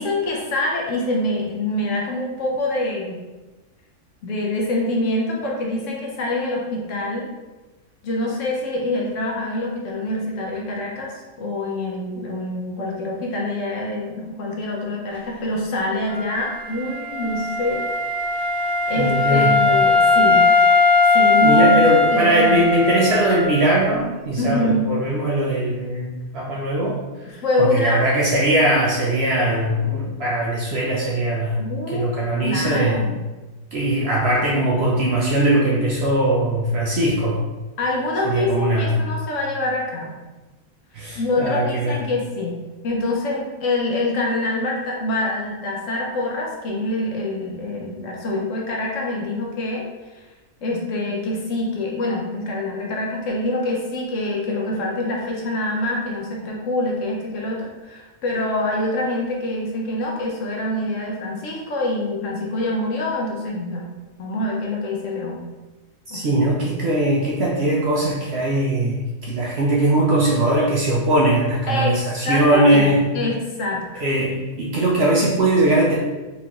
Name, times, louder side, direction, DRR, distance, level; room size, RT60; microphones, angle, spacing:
voice 1, 0.0-3.2 4.2-7.3 8.0-17.8 18.3-18.5 18.9-20.5 21.1-22.7 24.4-24.9 27.3-28.0 31.6-32.1 32.4-33.1 37.8-40.2 41.2-42.5 42.8-50.2 50.6-63.9 64.2-65.4 66.1-66.3 71.7-74.1, left 1 dB, 65° left, -2 dB, 1.0 m, -25 dB
Wind instrument woodwind instrument, 16.1-23.8, left 3 dB, ahead, 0.6 m, -19 dB
voice 2, 19.0-19.5 21.4-27.0 27.6-31.6 31.9-33.0 33.7-37.4 38.2-39.1 40.9-42.0 66.1-73.0 74.0-76.0, right 1 dB, 65° right, -4 dB, 0.7 m, -20 dB
4.2 x 2.6 x 2.9 m, 1.2 s
omnidirectional pair, 1.5 m